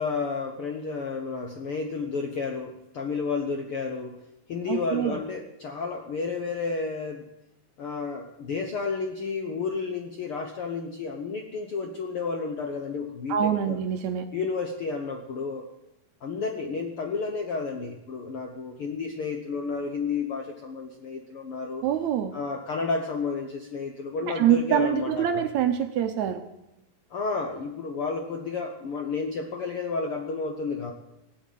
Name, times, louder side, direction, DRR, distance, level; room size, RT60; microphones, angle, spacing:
voice 1, 0.0-4.2 4.5-7.3 7.8-13.8 14.3-15.7 16.2-21.8 22.3-25.4 27.1-30.9, left 4 dB, 65° left, 4 dB, 1.4 m, -31 dB
voice 2, 4.7-5.2 13.3-14.3 21.8-22.3 24.3-26.4, right 9 dB, 70° right, 8 dB, 1.9 m, -25 dB
17.0 x 8.4 x 9.1 m, 0.90 s
omnidirectional pair, 3.9 m